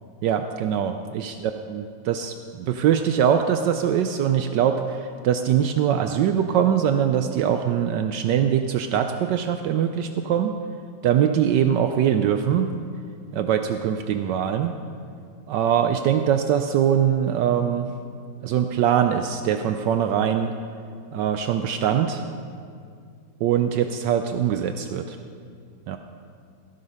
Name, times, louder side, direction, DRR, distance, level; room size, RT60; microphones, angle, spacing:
voice 1, 0.2-10.5 11.0-12.7 13.3-14.8 15.5-17.9 18.4-20.5 21.1-22.2 23.4-25.2 25.9-26.0, right 9 dB, 75° right, 7 dB, 1.2 m, -22 dB
15.5 x 9.7 x 5.5 m, 2.2 s
omnidirectional pair, 2.0 m